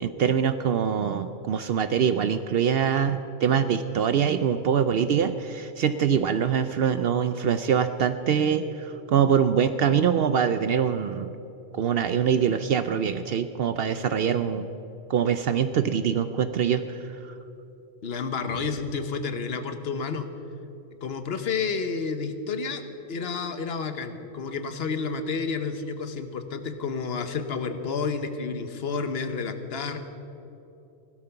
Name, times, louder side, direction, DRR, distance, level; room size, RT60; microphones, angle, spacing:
voice 1, 0.0-11.3 11.7-14.7 15.1-17.1, right 7 dB, 65° right, 11 dB, 0.7 m, -24 dB
voice 2, 18.0-20.3 21.0-22.8 23.1-30.0, left 5 dB, 60° left, 8 dB, 1.2 m, -30 dB
16.5 x 12.0 x 5.7 m, 2.9 s
omnidirectional pair, 1.2 m